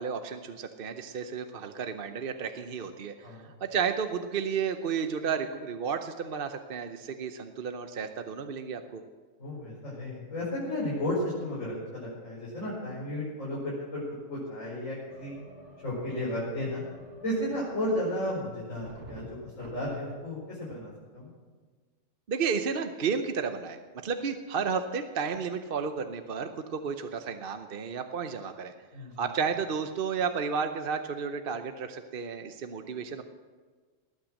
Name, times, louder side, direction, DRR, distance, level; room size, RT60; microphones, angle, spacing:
voice 1, 0.0-9.0 22.3-28.7 29.2-33.2, right 6 dB, 50° right, 7 dB, 0.9 m, -32 dB
voice 2, 9.4-14.0 14.3-15.4 15.8-16.8 17.2-21.3 28.9-29.2, left 1 dB, 75° left, -9 dB, 5.5 m, -33 dB
sound 1, 15.1-20.1, equal, 65° right, 2.3 m, -50 dB
19.5 x 8.9 x 6.4 m, 1.5 s
omnidirectional pair, 1.3 m